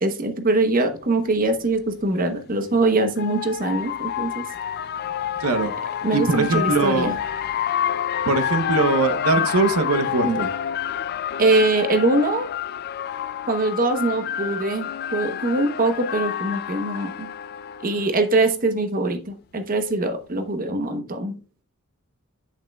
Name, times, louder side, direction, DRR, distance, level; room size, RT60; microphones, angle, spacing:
voice 1, 0.0-4.4 6.0-7.1 9.4-9.5 10.2-10.4 11.4-12.5 13.5-17.3 17.8-21.4, right 2 dB, 40° right, 0.8 m, -22 dB
sound 1, 1.0-1.1 2.5-18.1, left 9 dB, 45° left, 0.3 m, -28 dB
voice 2, 5.4-5.7 6.1-7.1 8.3-10.5, right 3 dB, 80° right, 0.8 m, -21 dB
8.4 x 7.4 x 2.3 m
head